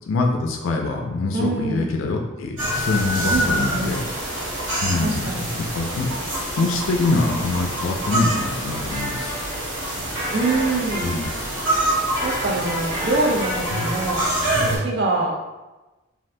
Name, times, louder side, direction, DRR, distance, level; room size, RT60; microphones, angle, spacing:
voice 1, 0.1-4.0 4.8-9.4 11.0-11.3 13.7-13.9, left 3 dB, 80° left, 2 dB, 0.4 m, -24 dB
voice 2, 1.3-1.9 3.3-3.9 5.0-5.5 10.3-11.2 12.2-14.2 14.8-15.3, right 2 dB, 55° right, -1 dB, 0.4 m, -24 dB
sound 1, 2.6-14.8, right 1 dB, 75° right, 1.3 m, -26 dB
sound 2, 8.7-14.1, equal, 15° right, 1.4 m, -32 dB
2.6 x 2.4 x 3.2 m, 1.1 s
head